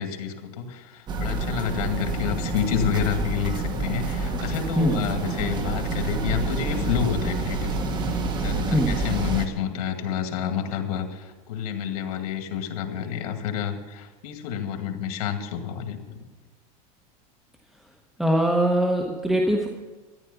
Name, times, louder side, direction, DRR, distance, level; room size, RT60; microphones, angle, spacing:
voice 1, 0.0-16.2, left 8 dB, 90° left, 5 dB, 2.2 m, -29 dB
sound 1, 1.1-9.5, right 2 dB, 25° right, 1.2 m, -28 dB
voice 2, 18.2-19.7, equal, ahead, 0 dB, 1.0 m, -21 dB
14.0 x 10.5 x 6.9 m, 1.2 s
supercardioid pair, 160°, 19 cm